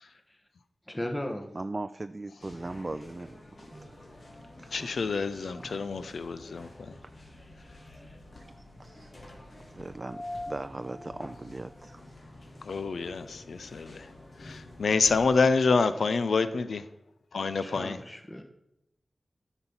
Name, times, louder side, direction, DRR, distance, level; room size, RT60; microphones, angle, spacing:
voice 1, 0.9-1.5 7.6-8.2 17.6-18.4, left 1 dB, 20° left, 1.3 m, -37 dB
voice 2, 1.5-3.4 3.7-4.1 4.6-4.7 5.3-5.8 7.0-7.1 8.6-9.1 9.7-12.0, right 2 dB, 40° right, 0.3 m, -39 dB
sound 1, 2.4-15.4, left 1 dB, 65° left, 2.3 m, -47 dB
voice 3, 4.7-7.0 12.6-14.1 14.4-16.9 17.3-18.0, left 4 dB, 85° left, 0.5 m, -27 dB
9.7 x 6.1 x 5.5 m
cardioid pair, 40°, 0 cm